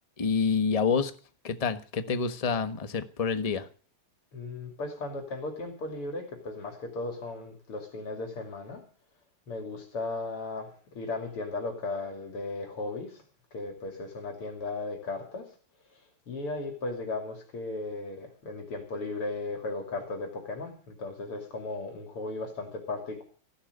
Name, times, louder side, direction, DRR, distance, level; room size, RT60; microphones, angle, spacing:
voice 1, 0.2-1.1 1.4-3.7, left 5 dB, 20° left, 10 dB, 1.0 m, -27 dB
voice 2, 4.3-8.8 9.5-13.2 13.5-15.5 16.3-23.2, left 3 dB, 85° left, 4 dB, 3.6 m, -36 dB
15.5 x 12.0 x 6.7 m, 0.41 s
omnidirectional pair, 2.4 m